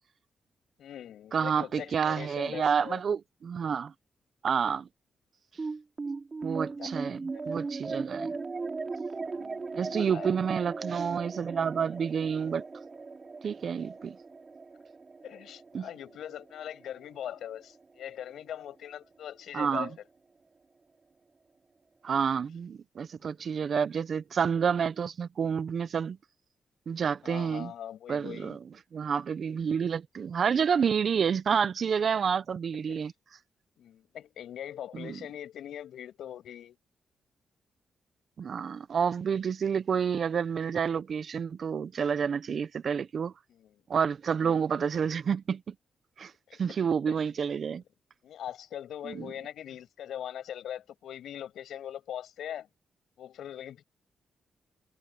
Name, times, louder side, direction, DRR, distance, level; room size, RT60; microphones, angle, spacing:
voice 1, 0.8-3.0 6.4-7.7 9.2-10.4 15.2-19.9 23.4-23.8 27.2-28.6 32.9-33.1 33.8-36.8 43.5-43.8 44.4-44.9 46.5-46.7 47.1-47.2 48.2-52.7 53.2-53.8, left 10 dB, 80° left, 7.2 m, -42 dB
voice 2, 1.3-3.9 4.4-4.8 6.4-8.3 9.7-12.6 13.4-14.1 15.7-15.9 19.5-19.9 22.0-26.2 26.9-27.7 28.1-28.6 28.9-33.1 35.0-35.1 38.4-43.3 43.9-45.7 46.2-46.3 46.6-47.8 49.1-49.3, right 7 dB, 60° right, 0.6 m, -29 dB
sound 1, 5.6-18.2, right 4 dB, 40° right, 3.3 m, -38 dB
cardioid pair, 70°, 0 cm